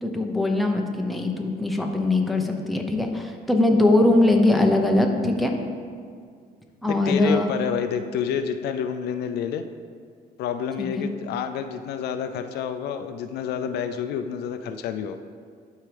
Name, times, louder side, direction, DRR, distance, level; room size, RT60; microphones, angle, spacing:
voice 1, 0.0-5.6 6.8-7.5 10.8-11.1, left 2 dB, ahead, 2 dB, 0.7 m, -21 dB
voice 2, 6.9-9.6 10.4-15.2, left 7 dB, 75° left, 8 dB, 0.4 m, -28 dB
12.0 x 4.6 x 3.4 m, 2.1 s
cardioid pair, 110°, 17 cm